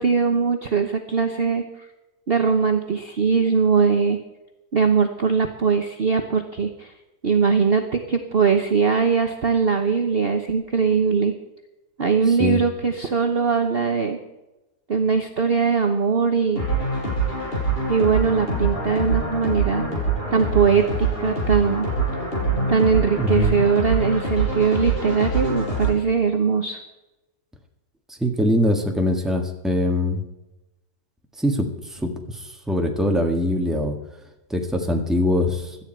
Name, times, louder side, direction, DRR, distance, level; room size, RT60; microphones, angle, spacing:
voice 1, 0.0-1.6 2.3-4.2 4.7-6.9 7.2-11.3 12.0-14.2 14.9-16.6 17.9-19.8 20.3-21.9 22.7-26.8, right 5 dB, 40° right, 5 dB, 1.0 m, -21 dB
sound 1, 16.6-25.9, right 3 dB, 35° left, 5.7 m, -24 dB
voice 2, 23.2-23.6 28.2-30.2 31.4-34.0 34.5-35.8, left 1 dB, ahead, 3 dB, 1.5 m, -22 dB
17.0 x 12.5 x 4.5 m, 0.98 s
omnidirectional pair, 1.8 m